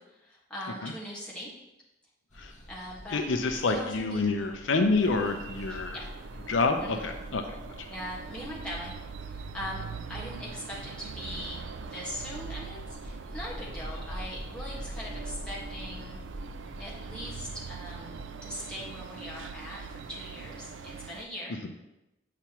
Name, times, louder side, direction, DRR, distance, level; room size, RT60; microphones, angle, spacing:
voice 1, 0.0-1.5 2.4-3.3 3.5-4.2 5.7-6.1 6.8-7.2 7.9-16.2 16.8-21.6, equal, 5° left, -6 dB, 1.6 m, -41 dB
sound 1, 2.3-18.3, equal, 35° left, 1.2 m, -45 dB
voice 2, 3.1-6.0 6.5-7.4, left 3 dB, 75° left, 5 dB, 0.6 m, -27 dB
sound 2, 5.0-21.3, right 5 dB, 70° right, 0.4 m, -42 dB
8.5 x 5.7 x 3.0 m, 0.96 s
head